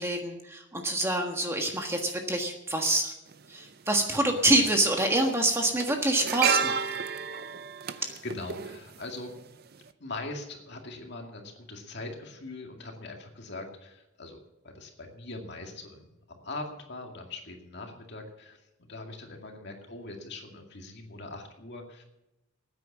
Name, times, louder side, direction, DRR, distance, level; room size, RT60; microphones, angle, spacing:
voice 1, 0.0-3.1 3.5-6.8, right 1 dB, 15° right, 3 dB, 1.5 m, -26 dB
sound 1, 3.3-3.4 4.6-4.9 5.1-9.4 9.7-9.9, right 6 dB, 50° right, 0.6 m, -31 dB
voice 2, 7.9-9.3 10.0-14.4 14.7-22.0, left 2 dB, 55° left, 2 dB, 2.3 m, -41 dB
14.0 x 9.4 x 7.3 m, 0.92 s
head